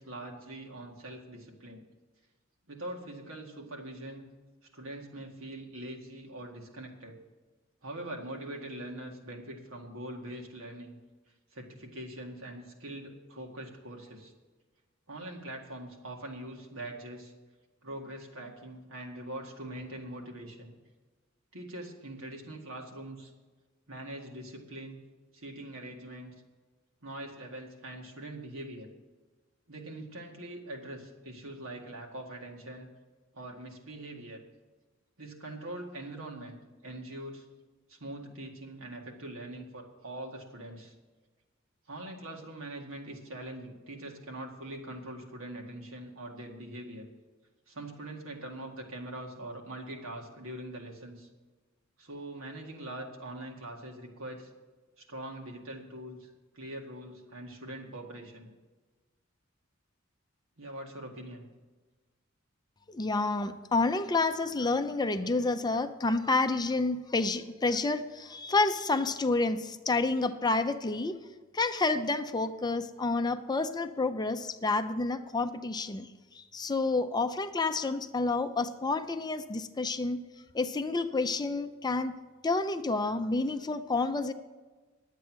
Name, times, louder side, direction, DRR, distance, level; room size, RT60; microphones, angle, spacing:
voice 1, 0.0-1.8 2.7-4.3 4.7-7.2 7.8-11.0 11.5-14.3 15.1-17.3 17.8-20.8 21.5-23.3 23.9-25.0 25.3-26.3 27.0-28.9 29.7-32.9 33.3-34.4 35.2-37.5 37.9-40.9 41.9-47.0 47.7-51.3 52.0-54.5 55.0-58.5 60.6-61.5, right 1 dB, 85° right, 1 dB, 2.0 m, -43 dB
voice 2, 62.9-71.2 71.5-76.1 76.3-80.3 80.5-82.2 82.4-84.3, left 3 dB, 20° left, 9 dB, 0.5 m, -29 dB
11.0 x 8.3 x 6.3 m, 1.3 s
head